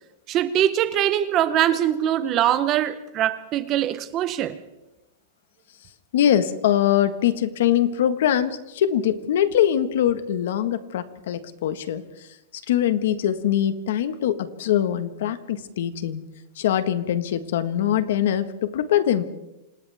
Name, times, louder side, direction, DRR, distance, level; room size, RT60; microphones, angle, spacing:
voice 1, 0.3-4.6, right 11 dB, 25° right, 0.9 m, -22 dB
voice 2, 6.1-12.0 12.7-16.2 16.6-19.2, left 10 dB, 65° left, 1.5 m, -22 dB
29.0 x 26.5 x 3.6 m
supercardioid pair, 175°, 0 cm